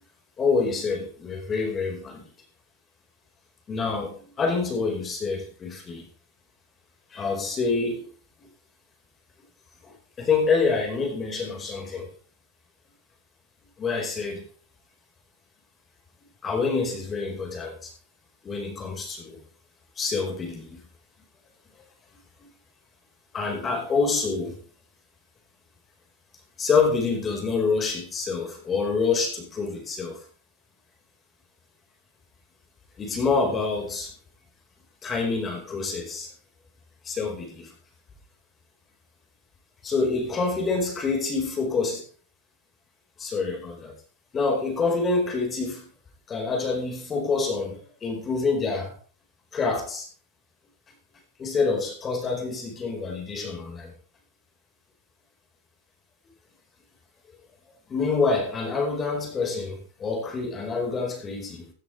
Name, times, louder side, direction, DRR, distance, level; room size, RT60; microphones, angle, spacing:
voice 1, 0.4-2.2 3.7-6.1 7.1-8.1 8.4-8.5 9.8-12.1 13.8-14.5 16.4-17.9 18.4-19.4 20.0-20.8 23.3-24.6 26.6-30.2 33.0-34.1 35.0-36.3 37.0-37.7 39.8-42.0 43.2-44.0 44.3-45.9 46.3-48.9 49.5-50.1 51.4-53.9 57.9-61.7, left 4 dB, 20° left, 4.7 m, -27 dB
16.0 x 10.5 x 3.3 m
supercardioid pair, 145°, 0 cm